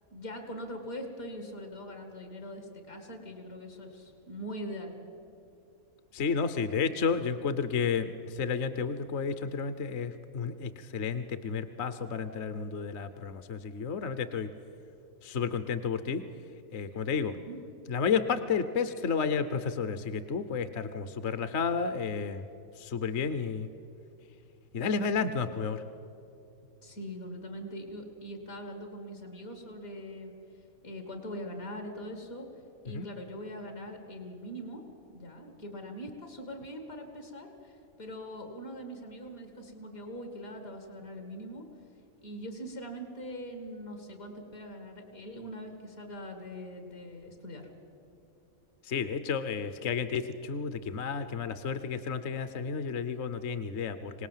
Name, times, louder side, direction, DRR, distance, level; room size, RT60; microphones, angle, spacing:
voice 1, 0.1-5.0 17.5-17.6 26.8-34.8 35.1-41.7 42.2-47.7, equal, 75° left, 5 dB, 2.5 m, -42 dB
voice 2, 6.1-14.5 15.2-16.2 16.7-17.4 17.9-22.4 22.8-23.7 24.7-25.8 32.9-33.1 48.8-54.3, left 5 dB, 55° left, 11 dB, 1.0 m, -31 dB
26.0 x 18.0 x 7.4 m, 2.9 s
omnidirectional pair, 1.5 m